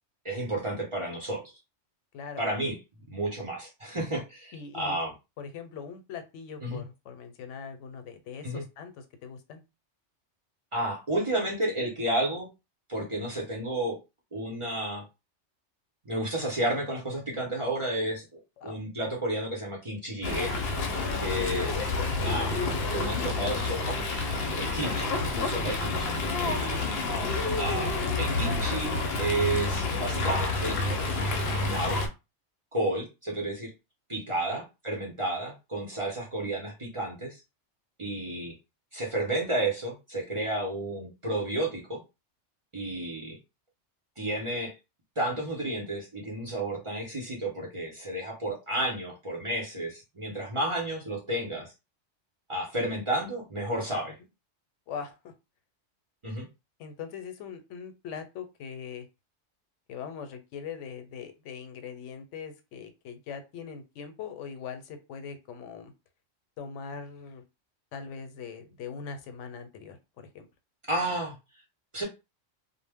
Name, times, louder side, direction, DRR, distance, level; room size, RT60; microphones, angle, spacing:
voice 1, 0.2-1.4 2.4-2.8 3.1-5.1 6.6-6.8 8.4-8.6 10.7-12.5 12.9-14.0 14.3-15.0 16.1-20.5 21.2-21.8 22.2-22.5 22.9-24.0 24.5-26.8 27.6-30.8 31.6-32.0 32.7-33.7 34.1-37.4 38.0-38.5 38.9-42.0 42.7-43.4 44.2-44.7 45.2-51.7 52.5-54.2 56.2-56.5 70.9-71.3 71.9-72.0, right 1 dB, 30° right, -2 dB, 0.6 m, -32 dB
voice 2, 2.1-2.5 4.5-5.0 5.4-9.6 18.6-18.8 34.5-34.6 54.1-54.2 54.9-55.3 56.8-59.1 59.9-65.9 66.6-67.4 67.9-70.5, left 6 dB, 90° left, 8 dB, 0.9 m, -41 dB
Fowl, 20.2-32.1, left 3 dB, 65° left, 0.7 m, -29 dB
2.1 x 2.0 x 3.4 m, 0.26 s
omnidirectional pair, 1.2 m